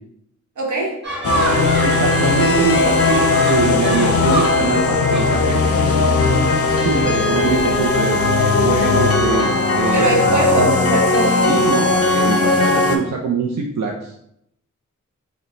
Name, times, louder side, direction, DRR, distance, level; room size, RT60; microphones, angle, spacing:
voice 1, 0.6-1.0 1.3-1.7 5.8-6.1 9.9-11.7, right 1 dB, 90° right, -1 dB, 1.0 m, -22 dB
sound 1, 1.0-6.1, right 2 dB, 40° right, 1.1 m, -28 dB
sound 2, 1.2-13.0, left 3 dB, 55° left, 0.5 m, -17 dB
voice 2, 1.8-5.6 6.6-8.2 8.6-9.5 9.8-10.7 11.5-14.1, right 5 dB, 65° right, 0 dB, 0.5 m, -23 dB
4.8 x 2.2 x 3.1 m, 0.74 s
wide cardioid pair, 105°, 29 cm